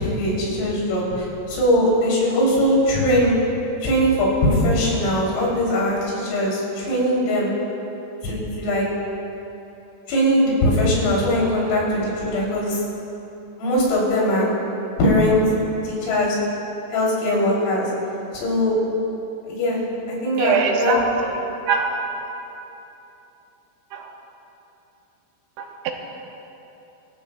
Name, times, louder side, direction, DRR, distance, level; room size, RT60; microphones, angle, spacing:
voice 1, 0.0-3.4 3.8-7.5 8.2-8.9 10.1-12.8 13.6-14.5 15.0-15.4 15.8-16.4 16.9-17.9 18.3-18.7 19.5-19.8 20.1-21.0, left 1 dB, 85° left, -5 dB, 6.2 m, -20 dB
voice 2, 20.4-21.4 21.7-22.0 23.9-24.1 25.6-25.9, right 5 dB, 75° right, 1 dB, 3.0 m, -23 dB
26.0 x 14.5 x 2.4 m, 3.0 s
omnidirectional pair, 5.8 m